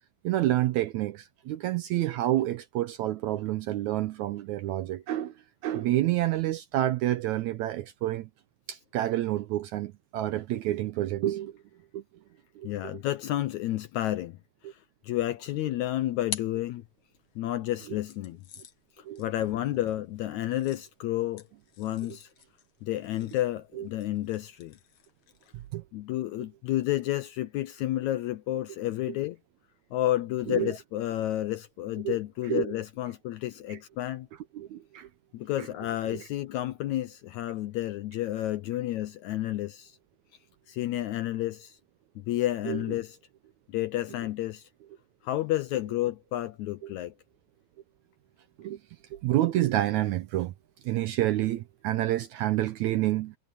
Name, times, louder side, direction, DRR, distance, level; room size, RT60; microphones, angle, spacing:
voice 1, 0.2-5.3 5.6-8.3 8.7-11.6 11.9-12.0 12.6-13.0 14.6-14.7 17.9-18.0 19.1-19.2 23.8-23.9 25.5-25.8 30.5-30.7 32.0-32.2 32.5-32.7 33.7-33.8 34.5-35.1 42.7-42.8 46.8-46.9 48.6-48.8 49.1-50.5 50.8-53.4, right 14 dB, 75° right, 1.7 m, -28 dB
voice 2, 12.6-14.4 14.6-16.8 17.4-18.4 19.0-21.4 21.8-22.3 22.8-24.8 25.9-29.4 29.9-34.3 35.3-40.0 40.7-41.8 42.2-43.2 43.7-44.7 45.2-47.1, left 14 dB, 75° left, 1.7 m, -31 dB
sound 1, 15.6-17.4 18.1-25.7, left 9 dB, 60° left, 2.1 m, -47 dB
omnidirectional pair, 4.0 m